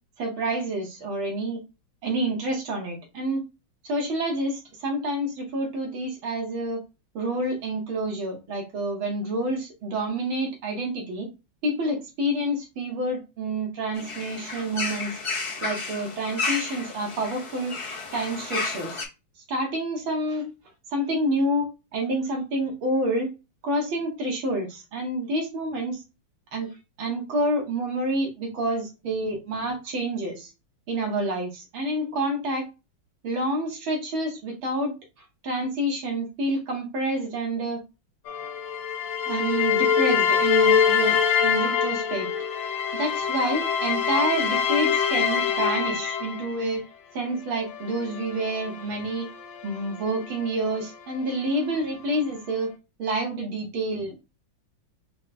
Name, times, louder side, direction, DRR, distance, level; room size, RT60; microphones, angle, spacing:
voice 1, 0.2-1.6 2.0-3.4 3.8-6.8 7.1-11.3 11.6-15.1 15.6-17.7 18.1-19.0 19.5-20.4 20.9-21.7 21.9-23.3 23.6-26.0 26.5-26.7 27.0-30.5 30.9-32.6 33.2-34.9 35.4-37.8 39.3-42.3 42.9-46.8 47.1-49.3 49.6-52.7 53.0-54.2, right 1 dB, 90° right, 1 dB, 2.3 m, -28 dB
sound 1, 13.9-19.0, left 4 dB, 40° left, 0.4 m, -32 dB
sound 2, 38.3-46.7 47.6-50.8, left 7 dB, 85° left, 1.6 m, -25 dB
5.1 x 2.3 x 4.1 m, 0.27 s
omnidirectional pair, 2.1 m